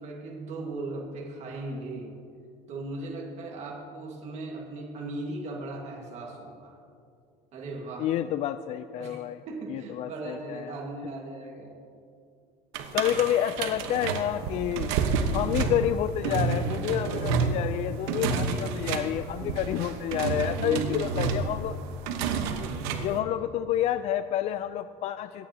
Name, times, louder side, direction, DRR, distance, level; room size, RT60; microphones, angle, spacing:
voice 1, 0.0-2.1 2.7-6.8 7.5-8.1 9.0-11.8 19.4-19.8 20.5-21.1 22.5-23.5, right 2 dB, 45° right, -1 dB, 1.6 m, -38 dB
voice 2, 8.0-9.4 9.7-10.7 12.9-15.0 15.3-21.8 23.0-25.5, left 11 dB, 45° left, 11 dB, 0.3 m, -29 dB
sound 1, 12.7-23.2, right 5 dB, 80° right, 1.1 m, -29 dB
24.0 x 9.1 x 2.8 m, 2.4 s
cardioid pair, 130°, 16 cm